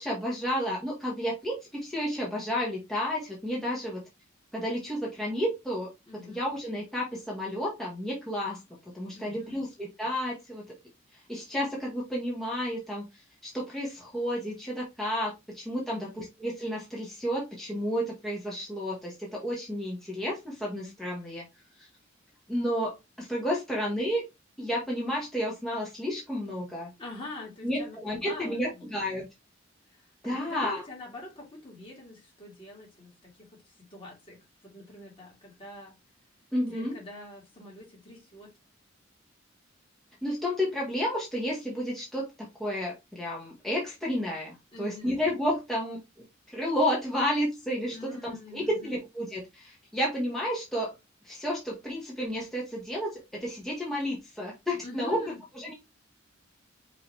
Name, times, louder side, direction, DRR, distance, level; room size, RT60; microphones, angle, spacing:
voice 1, 0.0-4.0 4.5-5.9 6.3-8.6 8.9-10.6 11.3-13.1 13.4-21.4 21.8-21.9 22.5-24.2 24.6-26.9 27.6-29.3 30.2-30.8 36.5-37.0 40.2-46.0 46.5-50.9 51.2-55.2 55.5-55.7, equal, ahead, 1.3 m, -31 dB
voice 2, 6.1-6.4 9.1-9.6 15.9-16.2 27.0-29.0 29.9-36.0 36.7-38.5 44.7-45.2 47.9-49.0 54.8-55.4, left 2 dB, 25° left, 2.6 m, -45 dB
5.5 x 3.1 x 3.1 m
head